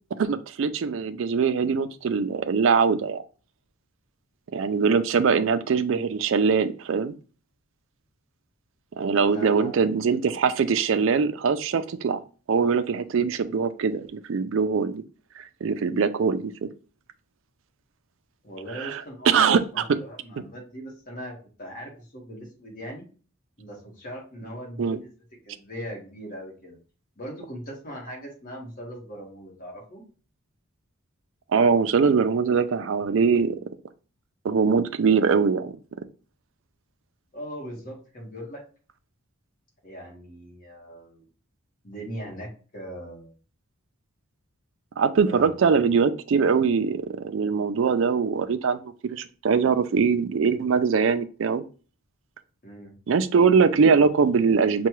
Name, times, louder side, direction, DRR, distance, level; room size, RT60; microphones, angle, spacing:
voice 1, 0.2-3.2 4.5-7.1 9.0-12.2 12.5-15.0 15.4-16.7 18.7-19.6 24.8-25.0 31.5-33.6 34.4-35.8 45.0-51.6 53.1-54.9, right 5 dB, 60° right, 11 dB, 0.4 m, -22 dB
voice 2, 9.2-9.8 18.4-23.0 23.6-25.1 25.4-26.8 27.2-30.0 37.3-38.6 39.8-41.2 41.8-43.4 45.3-45.8 52.6-53.0, equal, 40° left, -2 dB, 1.4 m, -40 dB
5.6 x 2.2 x 3.0 m, 0.37 s
head